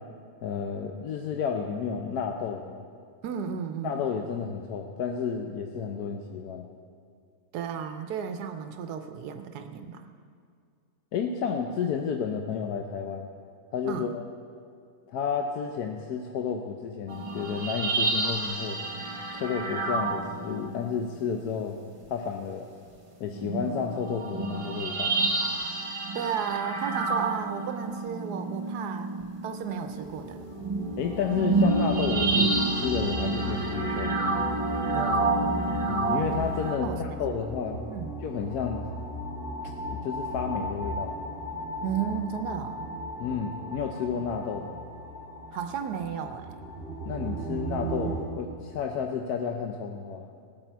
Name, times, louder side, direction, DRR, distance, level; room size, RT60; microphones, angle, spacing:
voice 1, 0.4-2.9 3.8-6.7 11.1-13.3 13.7-14.3 15.1-18.8 19.3-21.8 22.1-22.7 23.2-25.1 31.0-34.2 35.9-37.8 38.2-38.9 39.9-41.2 43.2-44.8 47.1-50.3, left 6 dB, 80° left, 3 dB, 1.3 m, -31 dB
voice 2, 3.2-4.1 7.5-10.1 13.9-14.1 26.1-29.1 29.4-30.4 34.9-35.9 36.8-37.2 37.9-38.1 41.8-42.9 45.5-46.7, right 7 dB, 90° right, 7 dB, 1.3 m, -34 dB
sound 1, 17.1-21.0 23.3-36.8, right 3 dB, 25° right, 0.9 m, -29 dB
sound 2, 29.9-48.2, equal, 5° right, 3.1 m, -36 dB
18.5 x 8.9 x 4.5 m, 2.3 s
omnidirectional pair, 1.7 m